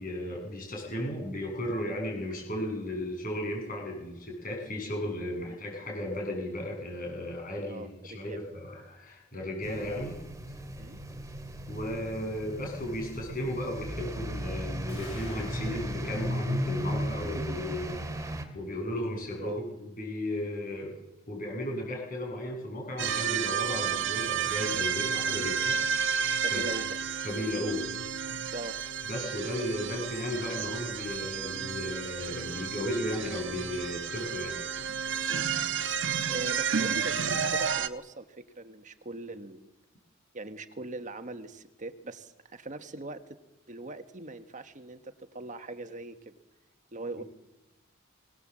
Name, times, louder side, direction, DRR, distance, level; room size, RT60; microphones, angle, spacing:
voice 1, 0.0-10.1 11.7-17.9 18.5-20.9 21.3-25.8 26.1-26.2 26.5-26.6 27.2-27.8 29.1-34.6, left 1 dB, 45° left, 1 dB, 7.7 m, -35 dB
voice 2, 7.7-8.5 9.6-9.8 10.8-11.0 17.1-17.8 19.4-19.6 25.3-25.6 26.4-27.0 28.5-28.8 35.3-35.5 36.3-39.7 40.3-43.4 43.7-46.4 46.9-47.2, right 2 dB, 40° right, 8 dB, 1.4 m, -41 dB
sound 1, 9.6-18.4, equal, 15° right, 2.6 m, -36 dB
sound 2, 14.9-18.9, left 1 dB, 70° left, 7.9 m, -47 dB
sound 3, 23.0-37.9, right 7 dB, 65° right, 1.1 m, -31 dB
23.0 x 18.5 x 7.6 m, 0.99 s
head